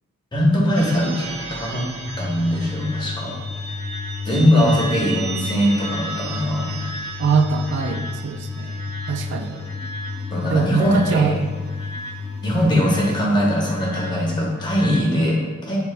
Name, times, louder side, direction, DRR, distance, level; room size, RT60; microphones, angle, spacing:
voice 1, 0.3-1.9 2.2-3.4 4.2-6.7 9.5-9.6 10.3-11.3 12.4-15.8, equal, 20° left, -4 dB, 0.9 m, -21 dB
sound 1, 0.7-13.3, right 3 dB, 75° right, 0.8 m, -37 dB
sound 2, 2.1-15.0, left 4 dB, 55° left, 0.9 m, -31 dB
voice 2, 7.2-8.8 9.1-9.5 10.5-11.5, right 5 dB, 55° right, 6 dB, 0.3 m, -22 dB
8.1 x 2.8 x 2.2 m, 1.3 s
head